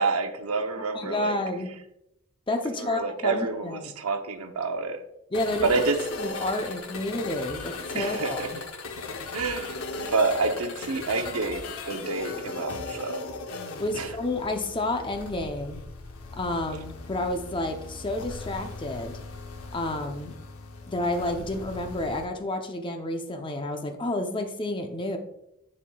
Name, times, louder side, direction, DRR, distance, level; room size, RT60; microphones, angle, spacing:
voice 1, 0.0-1.4 2.8-5.0 5.5-6.0 7.9-8.5 9.3-13.2 13.9-14.1, right 4 dB, 85° right, 7 dB, 0.7 m, -28 dB
voice 2, 0.9-1.7 2.5-3.9 5.3-5.7 6.2-8.6 13.8-15.8 16.3-19.2 19.7-20.3 20.9-25.2, left 1 dB, 25° left, 5 dB, 0.6 m, -30 dB
sound 1, 5.3-22.3, left 3 dB, 80° left, 0.8 m, -38 dB
10.0 x 4.2 x 2.3 m, 0.84 s
head